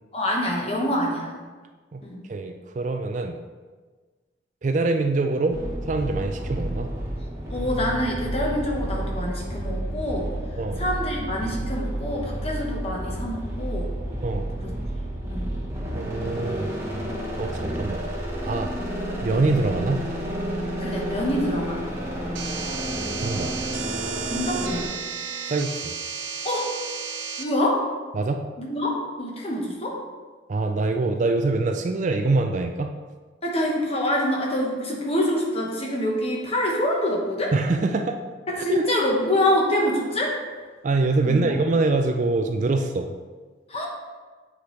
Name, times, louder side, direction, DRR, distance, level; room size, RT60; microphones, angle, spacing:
voice 1, 0.1-1.3 2.0-2.3 7.5-10.3 10.8-13.9 14.6-14.8 15.3-15.6 20.8-21.8 24.3-24.9 26.4-26.7 27.4-27.8 28.6-30.0 33.4-37.5 38.5-40.4 41.2-41.4 43.7-43.9, left 1 dB, 30° left, -2 dB, 1.1 m, -26 dB
voice 2, 2.3-3.4 4.6-5.6 5.9-6.9 10.6-10.8 14.2-14.5 15.9-16.8 17.4-18.1 18.4-18.7 19.2-20.1 23.2-23.6 25.5-25.9 28.1-28.4 30.5-32.9 37.5-38.2 38.7-38.8 40.8-43.1, right 3 dB, 40° right, 5 dB, 0.3 m, -24 dB
sound 1, 5.5-24.9, right 1 dB, 15° right, 1.0 m, -30 dB
sound 2, 22.4-27.4, right 6 dB, 75° right, 0.7 m, -33 dB
7.9 x 5.0 x 3.2 m, 1.4 s
head